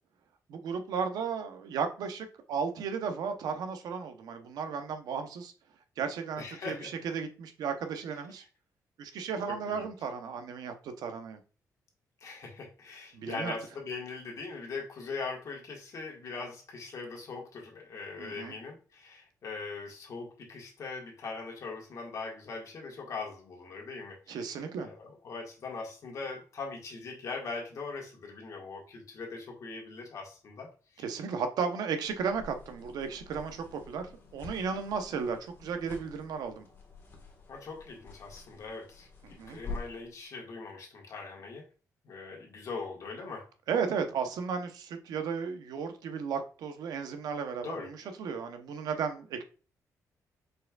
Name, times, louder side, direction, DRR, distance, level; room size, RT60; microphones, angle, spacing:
voice 1, 0.5-5.5 6.0-8.4 9.0-11.4 13.1-13.6 18.2-18.5 24.3-24.9 31.0-36.7 39.2-39.6 43.7-49.4, right 6 dB, 80° right, 0.8 m, -34 dB
voice 2, 6.4-6.9 9.5-9.9 12.2-24.4 24.8-30.7 30.9-31.0 37.5-41.7 42.0-43.5 47.6-47.9, left 4 dB, 55° left, 1.7 m, -41 dB
sound 1, 32.0-40.1, left 4 dB, 35° left, 1.4 m, -47 dB
5.1 x 4.4 x 2.3 m
cardioid pair, 125°, 7 cm